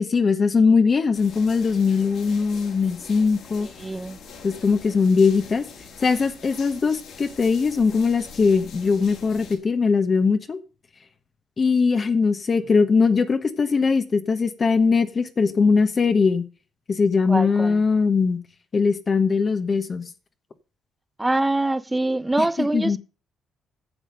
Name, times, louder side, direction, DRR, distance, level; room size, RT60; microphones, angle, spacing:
voice 1, 0.0-3.7 4.4-5.7 6.0-10.6 11.6-16.5 16.9-18.4 18.7-20.1 22.4-23.0, left 5 dB, 40° left, 1.2 m, -20 dB
sound 1, 1.1-9.6, left 5 dB, 75° left, 4.0 m, -44 dB
voice 2, 3.6-4.2 17.3-17.8 21.2-23.0, right 2 dB, 15° right, 0.7 m, -24 dB
10.0 x 7.3 x 6.5 m
cardioid pair, 90°, 0 cm